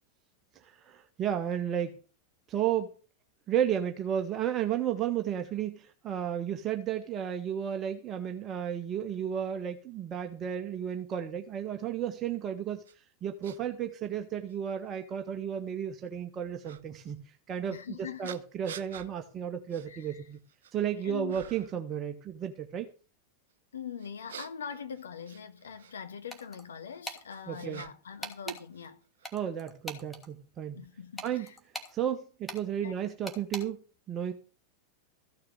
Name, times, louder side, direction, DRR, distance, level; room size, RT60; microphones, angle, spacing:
voice 1, 0.5-2.0 2.5-2.9 3.5-17.8 18.2-20.4 20.7-22.9 27.5-27.8 29.3-30.8 31.2-31.5 31.9-34.3, right 9 dB, 30° right, 1.4 m, -33 dB
sound 1, 12.8-12.9 13.4-13.6 14.5-14.6 16.6-16.8 18.2-19.1 19.7-19.9 20.3-20.8 21.3-21.8 24.0-25.9 26.9-28.2 28.4-29.3, right 8 dB, 60° right, 1.0 m, -47 dB
voice 2, 17.7-18.4 19.9-20.3 21.0-21.4 23.7-29.0 30.8-31.6 32.8-32.9, left 7 dB, 70° left, 1.9 m, -42 dB
sound 2, 26.3-26.7 27.0-27.2 28.2-28.6 29.2-30.3 31.2-31.9 32.5-32.6 33.3-33.6, equal, 5° left, 2.8 m, -40 dB
15.0 x 6.7 x 7.6 m
figure-of-eight pair, 90°, 0 cm